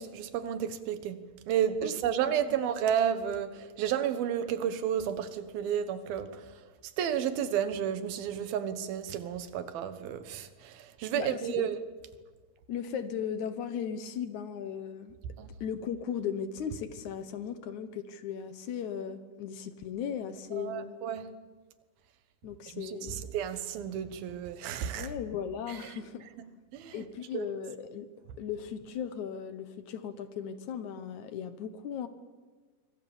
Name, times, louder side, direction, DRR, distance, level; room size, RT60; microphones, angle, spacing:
voice 1, 0.0-6.5 7.0-11.8 15.4-15.5 20.5-21.3 22.7-25.1 25.7-25.8 26.4-26.5 26.7-27.0 27.3-27.5, right 9 dB, 90° right, 3.2 m, -32 dB
voice 2, 11.1-11.7 12.7-15.2 15.6-21.0 22.4-23.3 25.0-26.3 26.9-28.1 28.4-32.1, left 8 dB, 65° left, 2.2 m, -37 dB
24.5 x 24.5 x 7.2 m
omnidirectional pair, 4.1 m